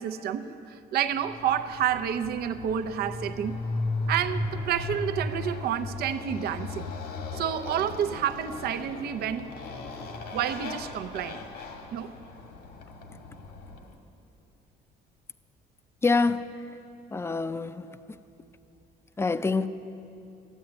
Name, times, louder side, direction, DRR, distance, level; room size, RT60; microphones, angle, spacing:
voice 1, 0.0-3.6 4.1-6.9 7.3-9.5 10.3-11.4 11.9-12.1, right 9 dB, 65° right, 9 dB, 0.7 m, -29 dB
Motorcycle, 1.2-13.9, left 2 dB, 75° left, 1.8 m, -36 dB
voice 2, 16.0-16.7 17.1-18.2 19.2-19.7, left 4 dB, 15° left, 12 dB, 0.5 m, -26 dB
12.5 x 9.3 x 9.5 m, 2.7 s
cardioid pair, 110°, 17 cm